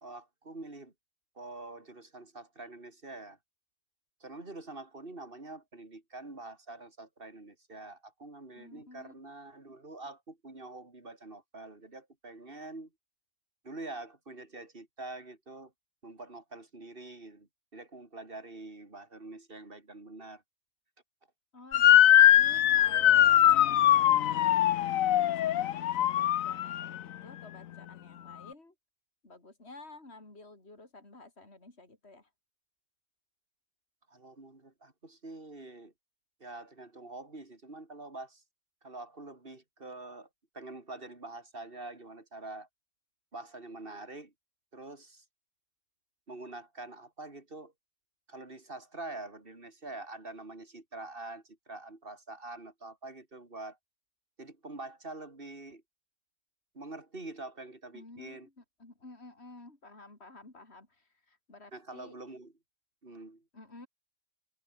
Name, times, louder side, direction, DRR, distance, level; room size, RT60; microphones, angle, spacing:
voice 1, 0.0-0.9 1.3-3.4 4.2-12.9 13.6-15.7 16.0-20.4 34.1-35.9 36.4-38.4 38.8-40.3 40.5-42.7 43.3-44.3 44.7-45.2 46.3-47.7 48.3-53.8 54.4-55.8 56.7-58.5 61.7-62.5 63.0-63.5, right 2 dB, 40° right, 4.1 m, -45 dB
voice 2, 8.5-9.1 21.5-24.6 25.3-28.7 29.2-32.3 57.9-62.2 63.5-63.9, left 2 dB, 50° left, 5.0 m, -52 dB
Motor vehicle (road) / Siren, 21.7-27.0, left 12 dB, 80° left, 1.1 m, -22 dB
omnidirectional pair, 1.4 m